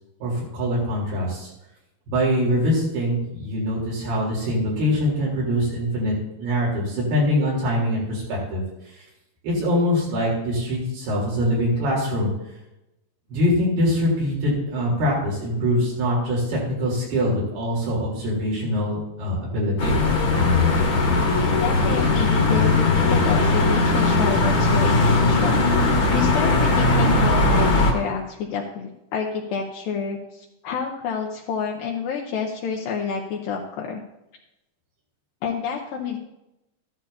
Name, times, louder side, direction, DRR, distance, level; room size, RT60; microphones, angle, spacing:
voice 1, 0.2-1.5 2.1-6.1 6.4-8.6 9.4-12.3 13.3-20.0, equal, 85° right, -4 dB, 5.9 m, -23 dB
sound 1, 19.8-27.9, left 2 dB, 45° left, 1.8 m, -19 dB
voice 2, 21.6-34.0 35.4-36.2, left 6 dB, 75° left, 0 dB, 2.4 m, -29 dB
14.0 x 12.0 x 2.9 m, 0.91 s
omnidirectional pair, 4.4 m